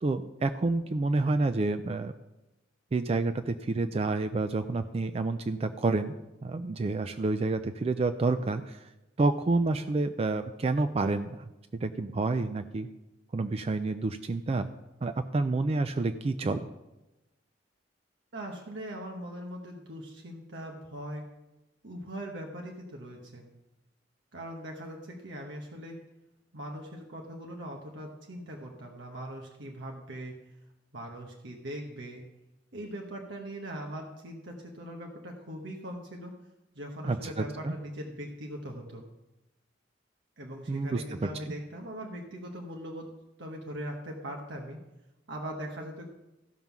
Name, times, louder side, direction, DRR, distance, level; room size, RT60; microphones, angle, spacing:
voice 1, 0.0-2.1 2.9-6.1 6.4-8.9 9.2-11.4 11.7-12.9 13.3-14.7 15.0-16.7 37.0-37.7 40.7-41.3, right 3 dB, 35° right, 10 dB, 0.4 m, -29 dB
voice 2, 18.3-21.3 21.8-23.5 24.3-26.0 26.5-30.4 30.9-32.2 32.7-36.4 36.7-39.0 40.4-43.1 43.4-44.8 45.3-46.1, equal, 80° right, 1 dB, 1.2 m, -40 dB
15.0 x 5.5 x 6.0 m, 0.99 s
head